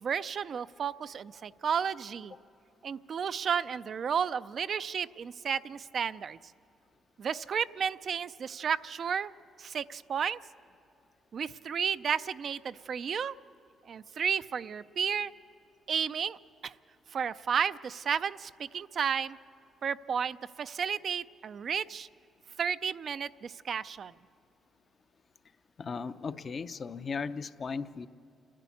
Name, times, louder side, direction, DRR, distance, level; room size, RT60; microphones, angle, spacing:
voice 1, 0.0-2.3 2.8-6.4 7.2-9.3 9.6-10.4 11.3-13.3 13.9-15.3 15.9-16.7 17.1-19.4 19.8-22.1 22.6-24.1, right 7 dB, 55° right, 13 dB, 0.4 m, -32 dB
voice 2, 25.8-28.1, left 5 dB, 45° left, 11 dB, 0.6 m, -36 dB
29.0 x 11.0 x 8.4 m, 2.7 s
cardioid pair, 90°, 0 cm